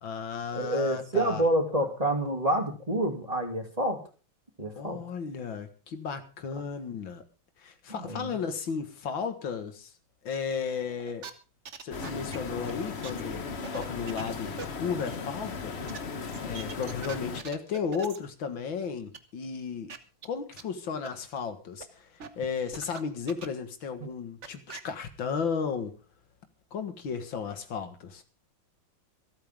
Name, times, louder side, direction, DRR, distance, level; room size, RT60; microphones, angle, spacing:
voice 1, 0.0-1.4 4.8-7.2 7.6-9.9 10.2-11.3 11.8-13.5 13.7-15.7 16.4-19.9 20.2-26.0 26.7-28.2, left 6 dB, 80° left, 8 dB, 2.4 m, -34 dB
voice 2, 0.5-4.0 4.6-5.0 7.9-8.3, right 1 dB, 20° right, 3 dB, 2.7 m, -28 dB
sound 1, 11.0-11.3 11.6-12.7 13.0-13.2 13.5-14.3 14.6-14.7 15.1-15.2 15.9-16.0 16.3-18.2 19.1-19.2 19.4-19.5 19.9-20.0 20.2-20.3 20.5-20.6 21.0-21.1 21.8-21.9 22.2-23.0 23.3-23.7 24.0-24.1 24.4-24.8, right 6 dB, 40° right, 1.4 m, -41 dB
sound 2, 11.9-17.4, left 5 dB, 40° left, 1.3 m, -37 dB
26.5 x 9.0 x 3.6 m, 0.35 s
omnidirectional pair, 2.1 m